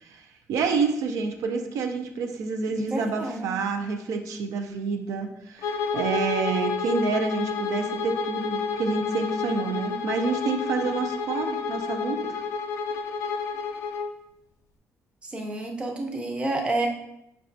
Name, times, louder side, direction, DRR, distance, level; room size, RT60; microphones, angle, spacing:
voice 1, 0.0-12.4, right 4 dB, 75° right, 5 dB, 0.4 m, -28 dB
voice 2, 2.8-3.6 15.2-16.9, right 2 dB, 20° right, 2 dB, 0.5 m, -29 dB
Bowed string instrument, 5.6-14.1, left 5 dB, 70° left, 0.4 m, -30 dB
4.8 x 2.2 x 2.5 m, 0.82 s
cardioid pair, 125°, 6 cm